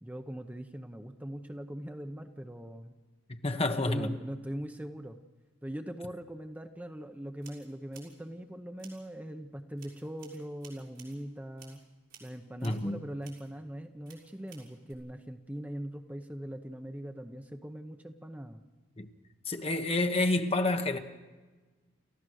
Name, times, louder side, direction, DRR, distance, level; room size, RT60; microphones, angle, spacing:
voice 1, 0.0-3.0 3.8-5.2 5.6-11.8 12.2-18.6, right 1 dB, 10° right, 0.8 m, -41 dB
voice 2, 3.4-4.1 12.6-13.0 19.0-19.1 19.5-21.0, left 2 dB, 30° left, 1.1 m, -29 dB
sound 1, 7.4-8.2 8.8-9.1 9.8-11.2 11.6-11.8 12.1-12.9 13.2-13.5 14.1-14.9, right 7 dB, 65° right, 6.2 m, -55 dB
30.0 x 14.5 x 6.4 m
head